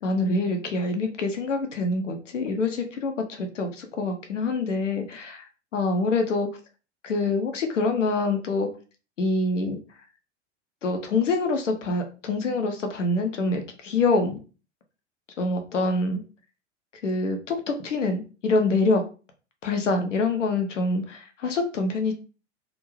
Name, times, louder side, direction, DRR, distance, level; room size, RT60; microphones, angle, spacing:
voice 1, 0.0-5.4 5.7-6.5 7.0-8.7 9.2-9.8 10.8-14.4 15.4-16.2 17.0-19.0 19.6-22.1, left 3 dB, 80° left, 5 dB, 0.6 m, -25 dB
2.4 x 2.1 x 3.1 m, 0.34 s
figure-of-eight pair, 90°, 37 cm